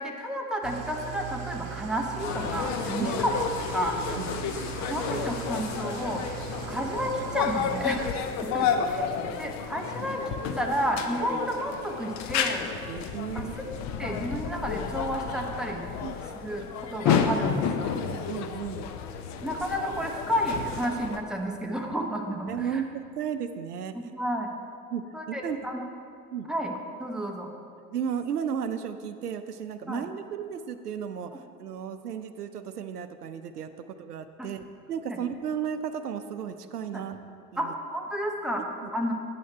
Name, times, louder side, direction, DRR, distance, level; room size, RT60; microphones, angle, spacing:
voice 1, 0.0-3.4 3.7-4.0 4.7-6.2 6.7-9.1 9.4-12.7 13.3-13.7 14.0-15.9 16.4-17.9 19.4-22.8 23.9-24.5 25.1-25.8 26.5-27.5 29.9-30.0 34.4-34.5 35.1-35.2 36.9-37.1 37.6-39.1, equal, ahead, 1 dB, 0.9 m, -31 dB
Engine starting / Idling, 0.6-8.1, right 8 dB, 65° right, 0.9 m, -39 dB
sound 1, 2.2-21.2, left 7 dB, 40° left, 0.7 m, -31 dB
voice 2, 4.2-4.6 12.9-13.6 16.0-16.2 18.1-18.9 22.5-23.9 24.9-25.6 26.3-26.5 27.9-37.7 38.6-38.9, right 8 dB, 90° right, 9 dB, 0.6 m, -34 dB
8.5 x 7.5 x 4.4 m, 2.4 s
hypercardioid pair, 80°, 45 cm